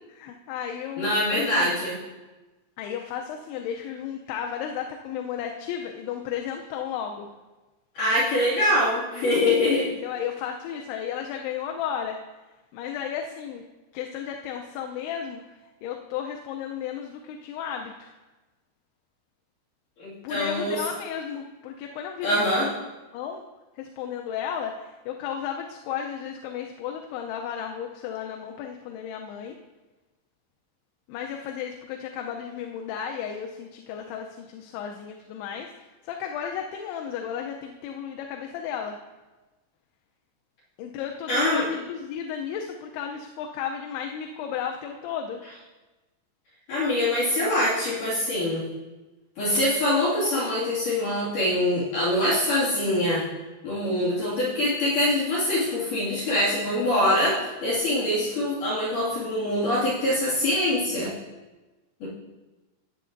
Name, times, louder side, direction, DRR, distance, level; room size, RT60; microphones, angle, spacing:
voice 1, 0.1-1.7 2.8-7.3 9.7-12.2 12.7-13.6 13.9-18.1 20.2-22.6 23.1-23.4 23.8-29.6 31.1-39.0 40.8-45.4, left 8 dB, 80° left, 2 dB, 2.7 m, -34 dB
voice 2, 1.0-2.0 8.0-9.9 20.0-20.8 22.2-22.7 41.3-41.6 46.7-48.7 49.4-53.3 53.6-61.1 62.0-62.1, left 1 dB, 55° left, -9 dB, 3.6 m, -24 dB
18.5 x 7.8 x 2.6 m, 1.2 s
omnidirectional pair, 4.7 m